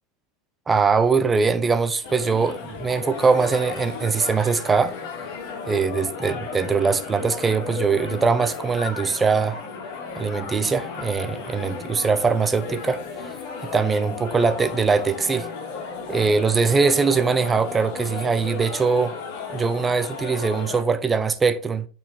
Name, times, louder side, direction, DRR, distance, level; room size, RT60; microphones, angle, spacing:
voice 1, 0.7-5.0 5.7-9.6 10.2-13.0 13.6-15.5 16.1-19.1 19.5-21.9, right 5 dB, 15° right, 0.7 m, -22 dB
sound 1, 2.0-20.8, left 5 dB, 60° left, 3.1 m, -34 dB
9.0 x 4.4 x 3.9 m
supercardioid pair, 145°, 0 cm